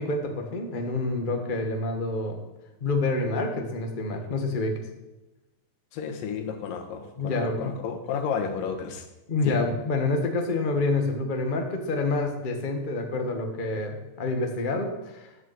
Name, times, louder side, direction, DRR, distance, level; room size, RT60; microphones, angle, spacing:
voice 1, 0.0-2.4 2.8-4.7 7.2-7.7 9.3-15.3, left 2 dB, 65° left, 4 dB, 0.5 m, -27 dB
voice 2, 5.9-9.1 9.4-9.6, left 6 dB, 90° left, 6 dB, 3.0 m, -32 dB
11.0 x 7.8 x 8.0 m, 1.0 s
omnidirectional pair, 3.8 m